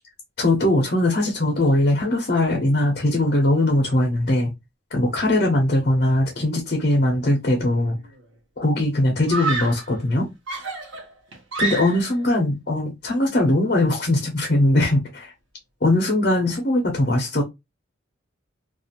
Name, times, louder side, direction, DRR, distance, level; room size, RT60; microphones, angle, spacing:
voice 1, 0.4-4.5 4.9-8.0 8.6-10.3 11.6-15.3 15.8-17.4, left 1 dB, 45° left, 0.6 m, -20 dB
Screaming, 7.7-8.2 9.3-9.9 10.5-12.2, right 2 dB, 75° right, 0.9 m, -29 dB
2.4 x 2.3 x 2.7 m
head